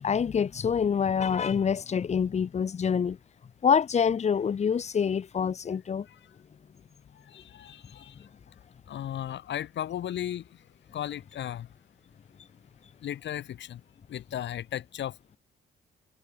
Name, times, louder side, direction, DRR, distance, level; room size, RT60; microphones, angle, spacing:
voice 1, 0.0-3.2 3.6-6.1, left 7 dB, 35° left, 0.7 m, -26 dB
voice 2, 7.3-8.1 8.9-10.5 10.9-11.7 13.0-13.8 14.1-15.4, left 11 dB, 65° left, 1.5 m, -35 dB
cardioid pair, 90°, 20 cm